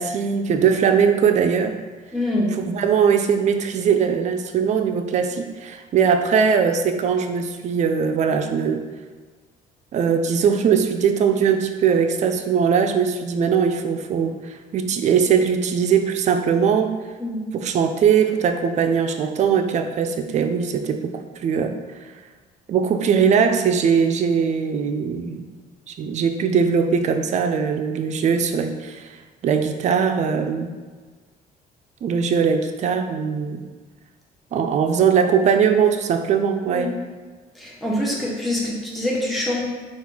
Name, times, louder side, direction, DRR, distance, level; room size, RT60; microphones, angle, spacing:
voice 1, 0.0-1.8 2.6-8.8 9.9-16.9 17.5-21.8 22.7-25.5 25.9-29.2 29.4-30.7 32.0-33.6 34.5-36.9, right 6 dB, 45° right, 7 dB, 0.4 m, -20 dB
voice 2, 2.1-2.5 17.2-17.4 36.7-36.9 37.6-39.6, left 1 dB, ahead, -5 dB, 0.9 m, -25 dB
4.2 x 2.4 x 3.8 m, 1.4 s
cardioid pair, 110°, 17 cm